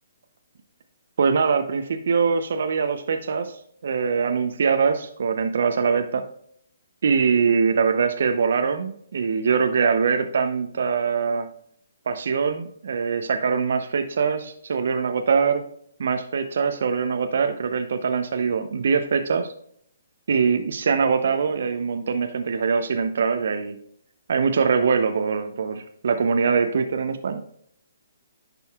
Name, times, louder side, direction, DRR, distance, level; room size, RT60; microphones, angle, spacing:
voice 1, 1.2-6.2 7.0-11.5 12.1-15.6 16.0-19.5 20.3-23.8 24.3-27.4, right 5 dB, 65° right, 7 dB, 0.6 m, -23 dB
10.5 x 5.3 x 2.3 m, 0.65 s
hypercardioid pair, 135°, 0 cm